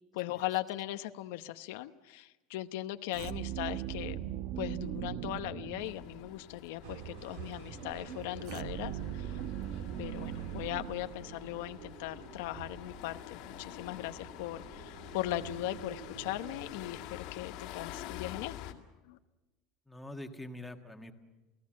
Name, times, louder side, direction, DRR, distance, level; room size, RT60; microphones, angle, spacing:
voice 1, 0.1-4.2 4.6-9.4 10.0-19.2, left 15 dB, 85° left, 9 dB, 0.9 m, -39 dB
sound 1, 3.1-6.4 8.5-11.7, right 11 dB, 55° right, 0.9 m, -39 dB
sound 2, 5.8-18.7, left 12 dB, 60° left, 2.0 m, -48 dB
sound 3, 6.8-17.1, right 7 dB, 80° right, 2.5 m, -49 dB
voice 2, 19.9-21.1, left 1 dB, 5° left, 4 dB, 1.6 m, -45 dB
29.0 x 17.5 x 7.5 m, 1.1 s
cardioid pair, 165°, 0 cm